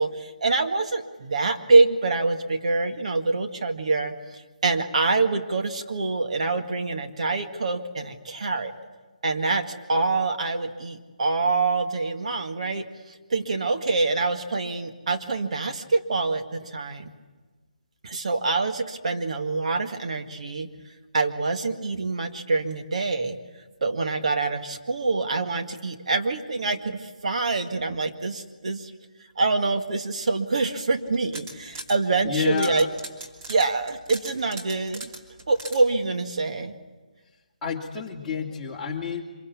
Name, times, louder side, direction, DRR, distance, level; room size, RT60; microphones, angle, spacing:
voice 1, 0.0-8.7 9.2-17.1 18.0-20.7 21.1-23.4 23.8-28.9 29.4-32.9 33.5-35.1 35.5-36.7, right 3 dB, 55° right, 5 dB, 1.9 m, -25 dB
sound 1, 31.1-32.0 32.3-35.8, right 2 dB, 20° right, 2.9 m, -39 dB
voice 2, 32.2-32.9 37.6-39.2, left 6 dB, 10° left, -4 dB, 2.8 m, -29 dB
26.0 x 22.5 x 8.5 m, 1.3 s
figure-of-eight pair, 155°, 4 cm